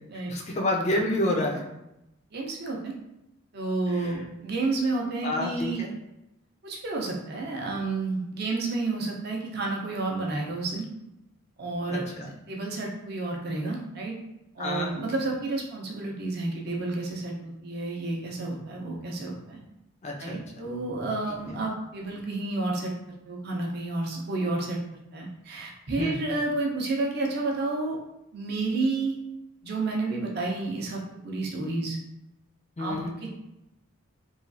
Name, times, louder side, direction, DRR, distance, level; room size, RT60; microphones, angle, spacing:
voice 1, 0.3-1.6 3.9-4.2 5.2-5.9 12.2-12.3 14.6-14.9 20.0-20.4 21.5-21.6 25.9-26.2 32.8-33.1, left 1 dB, 30° left, 0 dB, 0.4 m, -28 dB
voice 2, 2.3-2.9 3.5-5.8 6.6-10.9 11.6-14.2 14.5-19.6 20.2-22.9 23.3-24.8 25.1-28.0 28.3-29.2 29.6-32.0 32.8-33.3, right 2 dB, 50° right, -1 dB, 0.6 m, -30 dB
3.1 x 2.3 x 2.5 m, 0.89 s
head